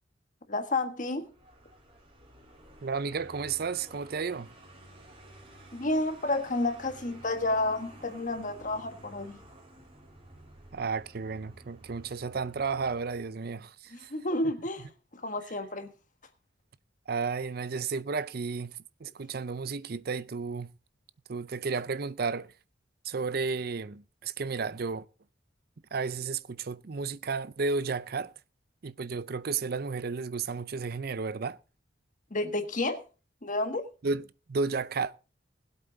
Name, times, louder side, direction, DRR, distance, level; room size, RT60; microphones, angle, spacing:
voice 1, 0.5-1.3 5.7-9.4 13.9-15.9 32.3-33.0 33.4-33.9, left 2 dB, 40° left, 1.5 m, -31 dB
Vehicle, 1.2-13.5, right 1 dB, 30° right, 3.4 m, -52 dB
voice 2, 2.8-4.5 10.7-14.1 17.1-20.7 21.3-22.5 23.0-25.1 25.9-28.3 28.8-31.6 34.0-34.2 34.5-35.2, right 4 dB, 50° right, 0.5 m, -33 dB
20.0 x 8.3 x 3.9 m
head